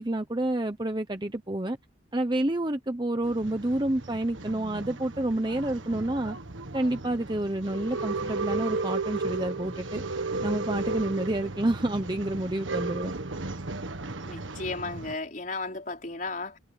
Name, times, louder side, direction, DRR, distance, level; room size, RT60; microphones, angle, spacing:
voice 1, 0.0-1.8 2.1-6.4 6.7-10.0 10.4-13.1, right 1 dB, 25° right, 0.9 m, -29 dB
Male speech man speaking / Chatter / Rattle, 3.2-15.2, right 3 dB, 80° right, 1.6 m, -35 dB
voice 2, 14.3-16.6, left 3 dB, 40° left, 4.9 m, -34 dB
head